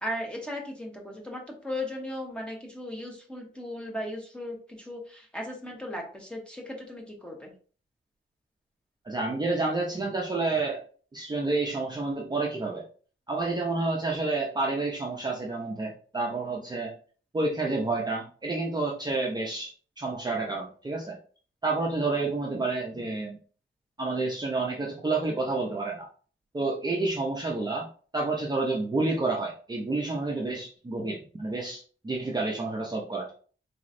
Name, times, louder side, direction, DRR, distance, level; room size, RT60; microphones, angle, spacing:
voice 1, 0.0-7.5, left 1 dB, 5° left, 0 dB, 0.9 m, -37 dB
voice 2, 9.0-10.8 11.1-12.8 13.3-16.9 17.3-21.2 21.6-23.4 24.0-26.1 26.5-27.9 28.1-33.3, right 3 dB, 20° right, -2 dB, 0.6 m, -29 dB
4.1 x 3.0 x 2.5 m, 0.42 s
wide cardioid pair, 165°, 20 cm